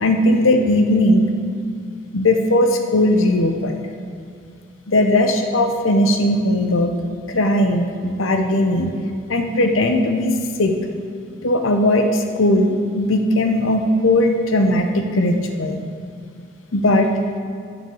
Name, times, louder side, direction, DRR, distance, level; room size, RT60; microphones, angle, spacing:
voice 1, 0.0-1.3 2.1-3.8 4.9-6.9 7.3-8.9 9.3-10.7 11.4-15.8 16.7-17.1, left 1 dB, 85° left, 5 dB, 0.9 m, -18 dB
9.3 x 7.2 x 7.2 m, 2.2 s
head